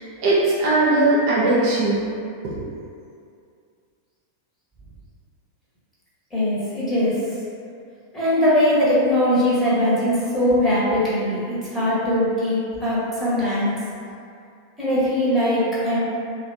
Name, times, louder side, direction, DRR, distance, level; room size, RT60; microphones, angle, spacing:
voice 1, 0.0-2.1 2.4-2.6, right 2 dB, 45° right, -7 dB, 0.6 m, -19 dB
voice 2, 6.3-7.2 8.1-13.7 14.8-16.0, left 1 dB, 5° left, -11 dB, 1.2 m, -21 dB
3.3 x 2.2 x 2.7 m, 2.4 s
figure-of-eight pair, 90°, 0 cm